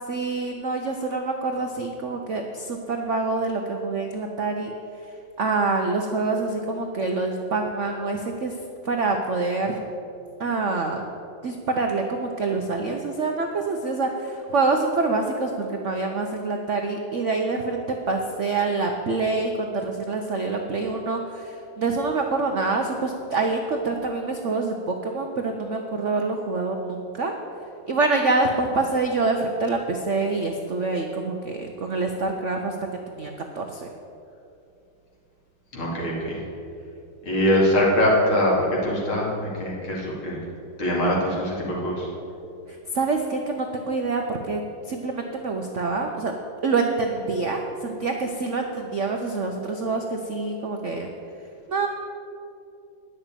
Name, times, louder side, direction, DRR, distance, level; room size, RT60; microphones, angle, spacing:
voice 1, 0.1-4.7 5.4-8.5 8.8-9.8 10.4-11.0 11.4-27.4 27.9-32.7 33.2-33.9 42.7-44.6 44.9-46.3 46.6-51.1 51.7-51.9, right 3 dB, 65° right, 3 dB, 0.7 m, -26 dB
voice 2, 35.7-36.4 37.2-38.5 38.8-40.4 40.8-42.1, left 1 dB, 75° left, -4 dB, 3.4 m, -23 dB
9.9 x 6.5 x 9.0 m, 2.6 s
omnidirectional pair, 2.3 m